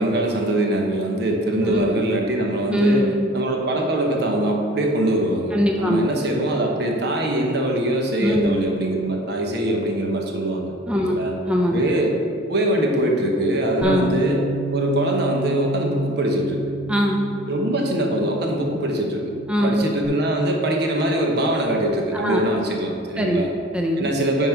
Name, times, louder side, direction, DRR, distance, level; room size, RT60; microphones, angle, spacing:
voice 1, 0.0-11.3 11.7-12.2 12.5-14.4 14.7-16.6 17.5-19.3 19.6-23.5 24.0-24.5, right 1 dB, 60° right, 1 dB, 1.0 m, -22 dB
voice 2, 2.7-3.3 5.5-6.1 8.2-8.5 10.9-11.9 13.8-14.2 16.9-17.3 19.5-19.8 22.1-22.5 23.2-24.1, equal, 5° right, 0 dB, 0.5 m, -22 dB
Bass guitar, 13.8-20.1, right 2 dB, 45° left, 0.8 m, -31 dB
9.9 x 3.8 x 4.6 m, 2.4 s
head